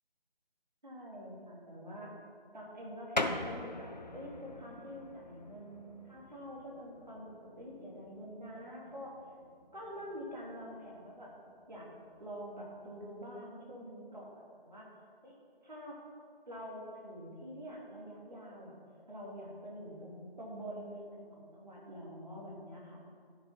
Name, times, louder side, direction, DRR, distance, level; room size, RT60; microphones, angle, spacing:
voice 1, 0.8-2.1 2.5-9.2 9.7-11.3 11.7-11.9 12.2-14.9 15.2-15.4 15.6-16.0 16.5-18.8 19.1-23.0, equal, 50° right, -4 dB, 2.8 m, -46 dB
sound 1, 3.1-13.3, left 2 dB, 45° left, 0.6 m, -44 dB
12.5 x 7.0 x 4.3 m, 2.1 s
figure-of-eight pair, 165°, 30 cm